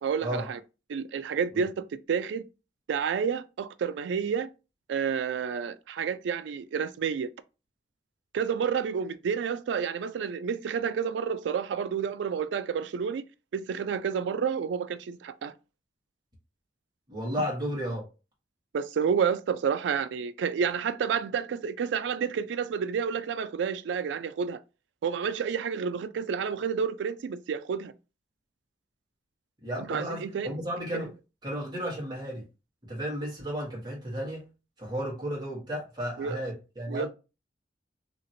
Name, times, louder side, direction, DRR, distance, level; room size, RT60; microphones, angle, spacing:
voice 1, 0.0-0.6 0.9-2.4 2.9-4.5 4.9-7.3 8.3-13.2 13.5-15.5 18.7-24.6 25.0-27.9 29.8-30.5 30.9-31.0 36.2-36.4 36.9-37.1, right 6 dB, 80° right, 0.3 m, -30 dB
voice 2, 17.1-18.1 29.6-31.1 31.4-32.4 32.8-34.5 34.8-37.1, equal, 25° right, 1.4 m, -33 dB
2.8 x 2.8 x 2.6 m
head